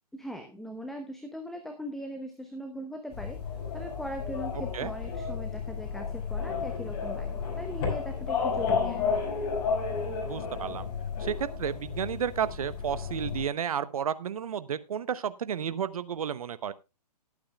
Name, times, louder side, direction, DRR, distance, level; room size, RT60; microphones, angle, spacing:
voice 1, 0.1-3.4 3.7-9.0, equal, ahead, 5 dB, 1.0 m, -40 dB
sound 1, 3.1-13.4, left 5 dB, 40° left, 5.2 m, -32 dB
voice 2, 10.2-10.9 11.2-16.7, right 8 dB, 60° right, 15 dB, 0.9 m, -32 dB
19.5 x 8.7 x 2.2 m, 0.26 s
figure-of-eight pair, 125°, 21 cm